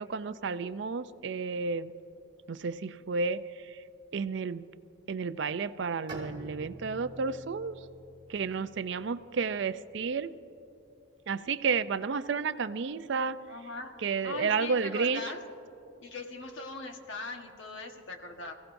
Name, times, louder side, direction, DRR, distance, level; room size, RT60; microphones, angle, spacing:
voice 1, 0.0-1.9 2.5-3.4 4.1-4.7 5.1-7.8 8.3-10.3 11.3-13.4 14.0-15.2, right 5 dB, 60° right, 14 dB, 0.4 m, -31 dB
Bowed string instrument, 6.1-9.7, right 1 dB, 25° right, 2.9 m, -47 dB
voice 2, 13.5-15.4 16.0-18.5, left 3 dB, 70° left, 4 dB, 1.3 m, -40 dB
26.0 x 16.0 x 2.6 m, 2.9 s
head